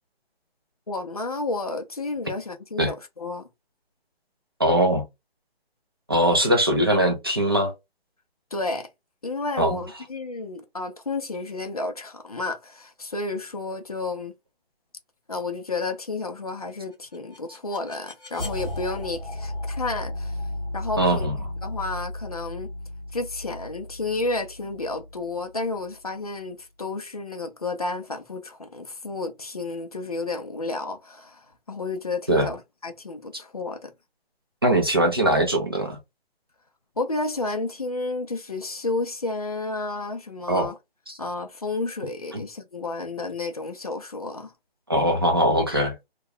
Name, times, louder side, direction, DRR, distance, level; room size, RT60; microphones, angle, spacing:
voice 1, 0.9-3.5 8.5-8.9 9.2-14.3 15.3-20.4 20.7-21.3 21.6-22.7 23.1-33.9 37.0-40.7 41.2-44.5, left 3 dB, 40° left, 0.4 m, -31 dB
voice 2, 4.6-5.0 6.1-7.7 9.6-9.8 21.0-21.4 32.3-32.5 34.6-36.0 40.5-40.7 41.1-41.2 42.3-42.4 44.9-45.9, right 1 dB, 25° right, 0.5 m, -21 dB
sound 1, 16.9-25.9, left 1 dB, 5° right, 0.9 m, -34 dB
2.8 x 2.1 x 3.3 m
hypercardioid pair, 170°, 31 cm